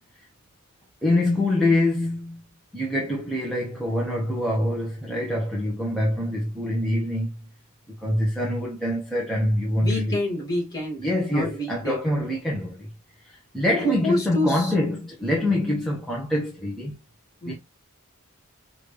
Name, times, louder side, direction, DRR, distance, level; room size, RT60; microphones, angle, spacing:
voice 1, 1.0-2.4 2.7-7.3 7.9-10.2 11.0-12.9 13.2-17.0 17.4-17.5, left 1 dB, ahead, 0.9 m, -25 dB
voice 2, 9.8-11.0 11.3-12.0 13.8-14.7 17.4-17.5, left 1 dB, 20° left, 2.2 m, -27 dB
5.0 x 2.6 x 3.2 m
head